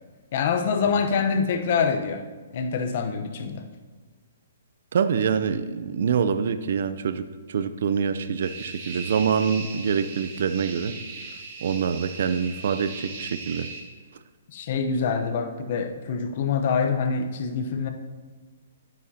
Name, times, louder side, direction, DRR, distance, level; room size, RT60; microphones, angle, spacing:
voice 1, 0.3-2.2 2.5-3.7 14.5-17.9, left 5 dB, 45° left, 6 dB, 0.8 m, -25 dB
voice 2, 4.9-7.2 7.5-11.0 11.6-13.7, right 6 dB, 60° right, 12 dB, 0.5 m, -25 dB
sound 1, 8.4-13.8, right 4 dB, 40° right, 1.4 m, -38 dB
11.5 x 9.3 x 2.8 m, 1.4 s
hypercardioid pair, 155°, 0 cm